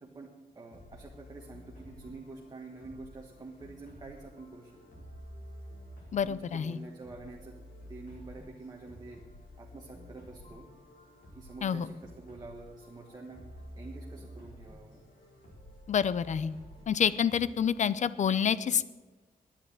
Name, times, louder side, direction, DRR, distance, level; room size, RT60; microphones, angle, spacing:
voice 1, 0.0-5.1 6.2-7.6 7.9-9.2 9.6-10.7 11.3-13.4 13.8-15.0, right 3 dB, 25° right, -1 dB, 1.5 m, -47 dB
sound 1, 0.7-17.5, equal, 70° left, 6.2 m, -51 dB
voice 2, 6.1-6.8 11.6-11.9 15.9-16.5 16.9-18.8, left 7 dB, 50° left, 17 dB, 0.6 m, -28 dB
11.0 x 10.0 x 8.9 m, 1.3 s
wide cardioid pair, 175°, 15 cm